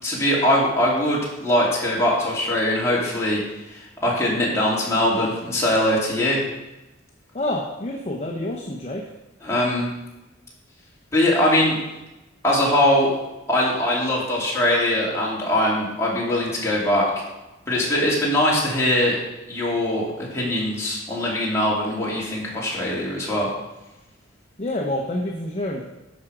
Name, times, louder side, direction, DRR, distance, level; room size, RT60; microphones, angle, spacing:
voice 1, 0.0-3.4 3.7-6.4 9.4-9.9 11.1-11.8 12.4-13.1 13.5-17.1 17.7-19.2 19.5-23.5, left 1 dB, 15° left, -6 dB, 2.8 m, -21 dB
voice 2, 7.3-9.1 24.6-25.8, left 1 dB, 35° left, 0 dB, 0.9 m, -27 dB
10.5 x 6.1 x 5.0 m, 1.0 s
head